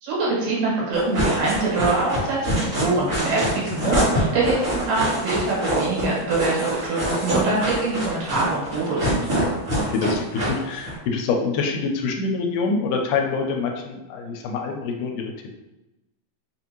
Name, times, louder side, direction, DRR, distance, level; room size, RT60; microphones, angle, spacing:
voice 1, 0.0-9.1, right 3 dB, 80° right, -5 dB, 3.0 m, -24 dB
sound 1, 0.9-10.9, right 1 dB, 45° right, 1.0 m, -25 dB
voice 2, 9.8-15.3, left 4 dB, 80° left, 3 dB, 2.2 m, -26 dB
5.5 x 2.5 x 2.9 m, 0.98 s
omnidirectional pair, 3.8 m